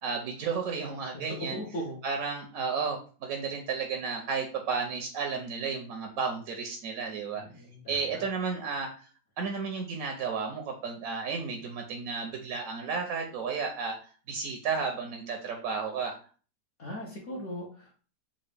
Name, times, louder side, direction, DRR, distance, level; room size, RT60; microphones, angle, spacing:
voice 1, 0.0-1.6 2.0-7.4 7.9-9.1 9.4-14.0 14.3-16.1, right 5 dB, 70° right, 2 dB, 0.9 m, -33 dB
voice 2, 1.1-2.0 7.3-8.2 16.8-17.9, equal, 55° left, -3 dB, 1.0 m, -39 dB
3.9 x 2.3 x 3.3 m, 0.38 s
omnidirectional pair, 1.8 m